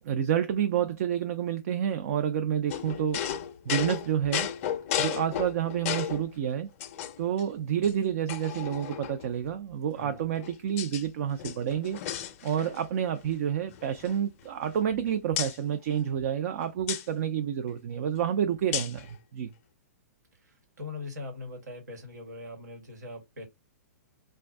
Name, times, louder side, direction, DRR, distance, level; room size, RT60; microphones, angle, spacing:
voice 1, 0.0-3.2 3.7-4.5 5.0-6.7 7.2-12.0 12.4-19.5, right 9 dB, 55° right, 0.4 m, -29 dB
sound 1, 2.7-6.3 6.8-7.4 7.8-7.9 8.3-9.3 10.1-11.0 11.3-12.9 13.2-13.4 13.7-15.0 15.4-15.6 16.9-17.1 18.7-19.1, left 10 dB, 50° left, 0.4 m, -34 dB
voice 2, 9.9-10.3 20.8-23.5, left 3 dB, 90° right, 1.3 m, -41 dB
2.5 x 2.2 x 3.3 m
hypercardioid pair, 140°, 9 cm